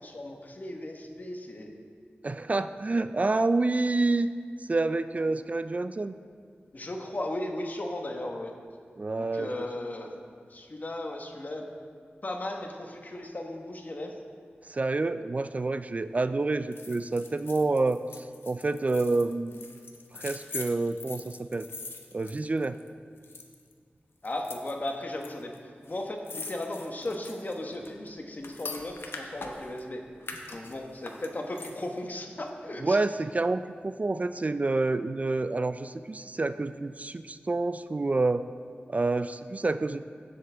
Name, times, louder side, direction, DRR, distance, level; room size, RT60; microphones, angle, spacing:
voice 1, 0.0-1.7 5.1-5.4 6.7-8.5 9.2-10.2 10.5-11.7 12.2-14.2 24.2-25.6 25.9-30.0 30.5-33.0, left 1 dB, 50° left, 2 dB, 1.2 m, -36 dB
voice 2, 2.2-4.3 4.6-6.1 9.0-9.5 14.6-19.6 20.1-21.7 22.1-22.8 32.8-38.4 38.9-40.0, right 3 dB, 40° right, 12 dB, 0.3 m, -28 dB
sound 1, 16.7-22.9 23.2-23.7 24.2-25.3 25.5-25.6 25.8-29.8 30.2-32.0 32.4-32.5, left 3 dB, 80° left, 0.9 m, -43 dB
15.0 x 8.0 x 3.5 m, 2.1 s
wide cardioid pair, 65°, 4 cm